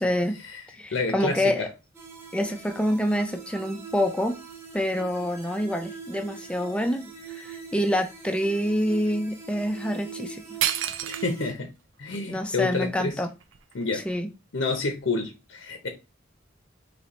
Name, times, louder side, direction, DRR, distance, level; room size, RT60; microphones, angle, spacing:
voice 1, 0.0-0.4 0.8-1.7 2.3-4.4 4.7-7.0 7.3-10.4 12.3-13.3 13.9-14.3, equal, 5° left, 0.4 m, -26 dB
voice 2, 0.9-1.7 11.1-11.7 12.0-13.2 13.7-14.0 14.5-15.9, left 3 dB, 75° left, 0.7 m, -29 dB
sound 1, 1.9-11.5, right 6 dB, 10° right, 0.9 m, -42 dB
sound 2, 10.6-11.6 12.1-12.2 12.8-14.2, right 11 dB, 70° right, 0.4 m, -30 dB
4.3 x 3.0 x 3.0 m
head